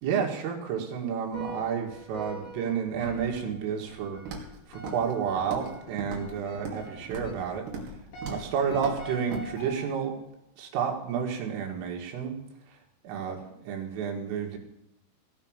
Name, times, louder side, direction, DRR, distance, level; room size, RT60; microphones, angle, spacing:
voice 1, 0.0-4.4 4.7-8.0 8.3-10.2 10.6-12.4 13.0-14.6, right 7 dB, 75° right, 1 dB, 4.6 m, -31 dB
sound 1, 1.3-10.3, equal, 85° left, 6.9 m, -45 dB
Walk footsteps, 4.3-4.6 4.8-5.1 5.4-5.7 6.0-6.8 7.1-7.4 7.7-8.0 8.2-8.4 8.7-9.0 9.3-9.4, right 3 dB, 60° right, 4.2 m, -37 dB
17.5 x 6.1 x 9.0 m, 0.85 s
omnidirectional pair, 5.8 m